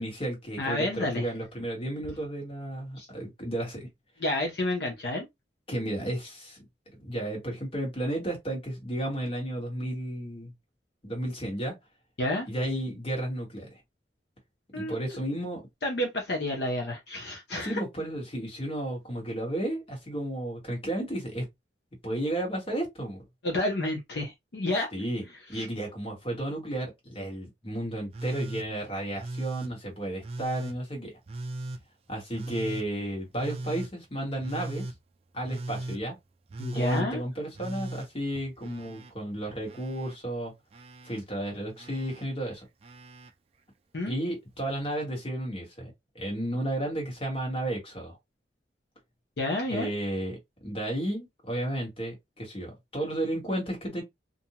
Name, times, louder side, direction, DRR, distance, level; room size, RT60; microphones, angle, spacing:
voice 1, 0.0-3.9 5.7-6.6 7.0-10.5 11.0-11.8 12.5-13.8 14.7-15.6 17.6-21.5 22.0-23.2 24.9-31.1 32.1-34.8 35.3-36.2 36.7-40.5 41.0-42.6 44.1-48.2 49.7-54.0, right 1 dB, 30° left, 1.2 m, -33 dB
voice 2, 0.6-1.2 3.0-3.1 4.2-5.3 12.2-12.5 14.7-14.9 15.8-17.8 23.4-24.9 25.5-25.7 36.6-37.2 43.9-44.1 49.4-49.9, left 1 dB, 65° left, 0.7 m, -30 dB
Telephone, 28.1-28.7 29.2-29.7 30.2-30.8 31.3-31.8 32.3-32.9 33.4-33.9 34.4-35.0 35.4-36.0 36.5-37.1 37.5-39.1 39.4-40.2 40.7-41.2 41.8-42.3 42.8-43.3 44.5-44.6, right 2 dB, 35° right, 0.4 m, -38 dB
2.6 x 2.1 x 2.8 m
head